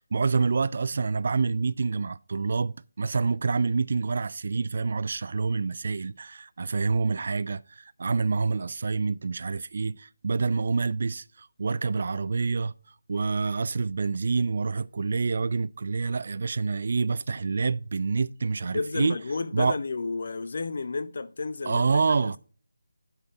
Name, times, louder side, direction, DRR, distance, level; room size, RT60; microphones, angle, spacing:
voice 1, 0.0-12.7 13.1-19.2 19.5-19.8 21.7-22.4, right 4 dB, 45° right, 0.4 m, -27 dB
voice 2, 18.7-22.4, left 4 dB, 50° left, 0.9 m, -32 dB
11.0 x 5.8 x 4.0 m
figure-of-eight pair, 155°, 0 cm